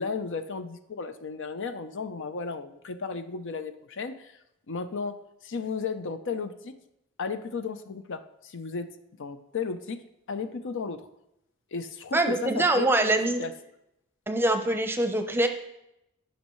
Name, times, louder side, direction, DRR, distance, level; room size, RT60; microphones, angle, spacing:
voice 1, 0.0-4.3 4.7-5.2 5.4-6.7 7.2-8.9 9.2-10.0 10.3-11.1 11.7-13.5, left 5 dB, 60° left, 9 dB, 0.6 m, -34 dB
voice 2, 12.1-13.4 14.3-15.5, right 1 dB, 10° right, 6 dB, 0.7 m, -24 dB
15.5 x 6.3 x 3.1 m, 0.85 s
head